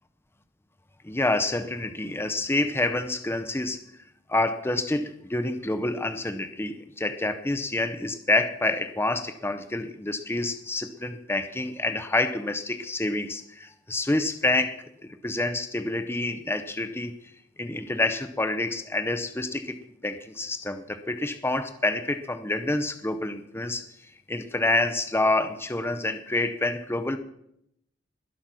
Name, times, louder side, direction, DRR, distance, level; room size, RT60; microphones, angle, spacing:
voice 1, 1.0-3.8 4.3-17.1 17.6-19.8 20.0-23.8 24.3-27.2, left 2 dB, 15° left, 9 dB, 0.7 m, -27 dB
21.0 x 8.7 x 6.1 m, 0.77 s
head